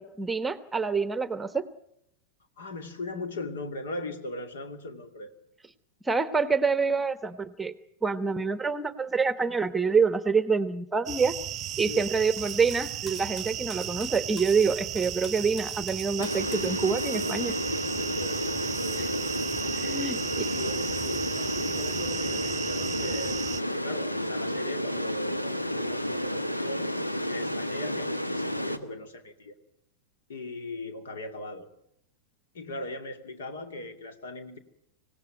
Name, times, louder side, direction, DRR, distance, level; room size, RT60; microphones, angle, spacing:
voice 1, 0.0-1.7 6.0-7.7 8.0-11.3 11.8-17.5 19.0-19.1 19.7-20.5, right 5 dB, 10° right, 14 dB, 1.1 m, -27 dB
voice 2, 2.6-5.3 11.9-12.1 18.0-19.3 19.8-23.5 23.7-26.9 27.3-29.5 30.3-31.7 32.5-34.6, left 2 dB, 60° left, 9 dB, 2.6 m, -39 dB
sound 1, 11.1-23.6, right 11 dB, 30° right, 0.9 m, -35 dB
Cutlery silverware, 12.4-16.7, left 3 dB, 25° left, 6.5 m, -48 dB
sound 2, 16.2-28.8, equal, 85° left, 1.4 m, -31 dB
25.5 x 17.5 x 9.3 m, 0.76 s
figure-of-eight pair, 90°, 0 cm